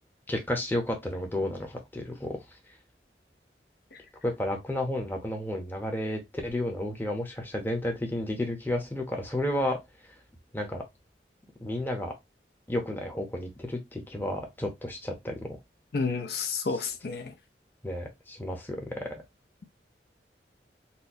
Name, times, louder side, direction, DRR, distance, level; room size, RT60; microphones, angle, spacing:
voice 1, 0.3-2.4 4.2-9.8 10.5-10.8 11.6-12.1 12.7-15.6 16.7-16.9 17.8-19.2, left 1 dB, 10° left, 0.7 m, -32 dB
voice 2, 15.9-17.3, left 4 dB, 60° left, 0.5 m, -30 dB
4.2 x 2.1 x 2.6 m
head